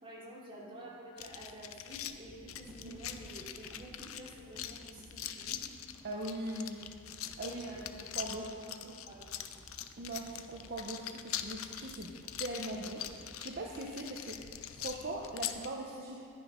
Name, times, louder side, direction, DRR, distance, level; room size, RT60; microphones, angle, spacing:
voice 1, 0.0-5.6 7.4-8.0 8.2-8.8 9.1-9.3, right 1 dB, 25° right, -6 dB, 2.8 m, -49 dB
sound 1, 1.2-15.7, left 10 dB, 65° left, 0.6 m, -43 dB
sound 2, 2.3-13.7, equal, 10° left, 1.4 m, -58 dB
voice 2, 6.0-6.8 7.4-7.6 8.2-8.4 10.0-12.1 12.4-14.5 14.7-16.2, right 1 dB, 45° right, -1 dB, 0.9 m, -40 dB
11.5 x 9.9 x 5.2 m, 2.3 s
head